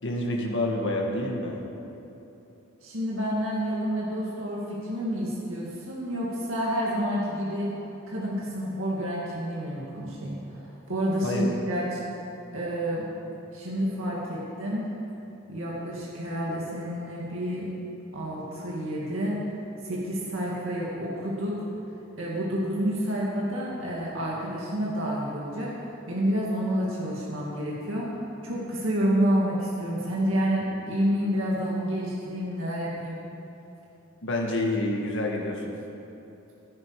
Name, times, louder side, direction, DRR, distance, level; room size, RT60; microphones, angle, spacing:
voice 1, 0.0-1.6 11.2-11.5 34.2-35.7, left 1 dB, 60° left, 0 dB, 1.7 m, -28 dB
voice 2, 2.8-7.7 8.1-12.0 12.5-13.1 13.5-14.8 15.5-17.7 18.1-19.4 19.8-21.6 22.2-25.7 26.1-28.1 28.4-33.2, equal, 65° right, -5 dB, 2.3 m, -29 dB
16.0 x 10.5 x 4.8 m, 3.0 s
head